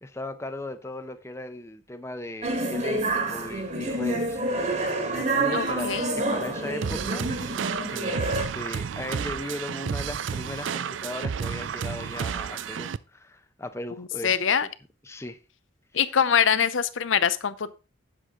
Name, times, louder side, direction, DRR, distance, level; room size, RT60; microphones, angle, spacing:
voice 1, 0.0-7.3 7.9-14.7 15.0-15.4, left 1 dB, 15° left, 0.7 m, -37 dB
sound 1, 2.4-8.5, right 2 dB, 35° right, 1.6 m, -28 dB
voice 2, 5.5-6.1 14.0-14.7 15.9-17.7, left 7 dB, 75° left, 0.7 m, -24 dB
sound 2, 6.8-13.0, right 7 dB, 70° right, 0.4 m, -31 dB
8.3 x 7.6 x 3.7 m
head